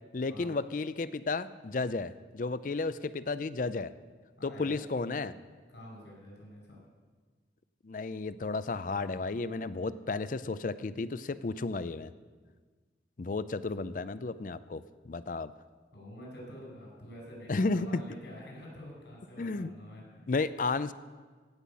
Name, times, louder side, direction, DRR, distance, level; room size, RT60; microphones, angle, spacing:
voice 1, 0.1-3.9 4.4-5.3 7.8-12.1 13.2-15.5 17.5-18.0 19.4-19.7 20.3-20.9, left 3 dB, 45° left, 14 dB, 0.4 m, -33 dB
voice 2, 4.4-5.3 5.7-6.8 15.9-20.2, equal, 85° left, -2 dB, 5.1 m, -48 dB
17.0 x 5.8 x 8.2 m, 1.5 s
head